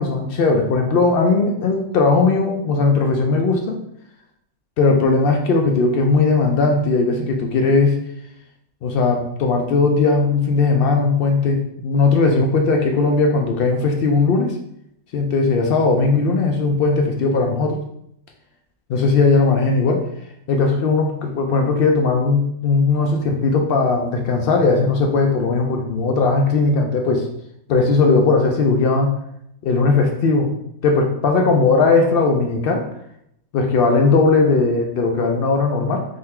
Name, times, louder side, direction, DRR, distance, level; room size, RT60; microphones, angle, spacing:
voice 1, 0.0-3.6 4.8-8.0 8.8-14.6 15.1-17.8 18.9-20.0 20.5-27.3 27.7-29.1 29.6-30.5 30.8-32.8 33.5-36.1, left 3 dB, 80° left, 2 dB, 0.5 m, -18 dB
3.7 x 2.6 x 4.3 m, 0.76 s
omnidirectional pair, 1.5 m